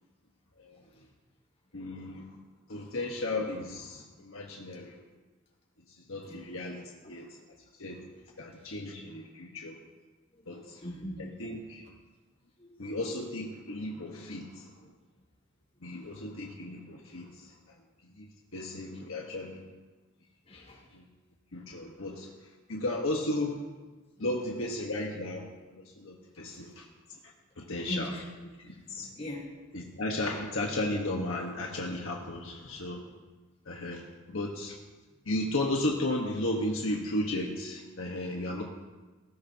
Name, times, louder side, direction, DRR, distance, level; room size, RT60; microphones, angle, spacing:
voice 1, 1.7-2.4 2.7-5.0 6.1-7.3 7.8-8.0 8.4-9.8 10.5-10.8 11.2-11.8 12.8-14.7 15.8-17.5 18.2-19.6 20.9-21.1 21.5-22.3 22.7-23.6 24.2-26.9 27.6-28.1 28.9-29.1 29.7-33.1 33.7-34.8 35.2-38.6, left 1 dB, 70° left, -1 dB, 1.4 m, -34 dB
voice 2, 10.6-11.5 12.6-12.8 16.0-16.1 20.5-20.8 24.2-24.3 27.9-28.2 28.6-29.5, equal, 30° left, -4 dB, 4.4 m, -41 dB
19.0 x 16.5 x 2.9 m, 1.3 s
head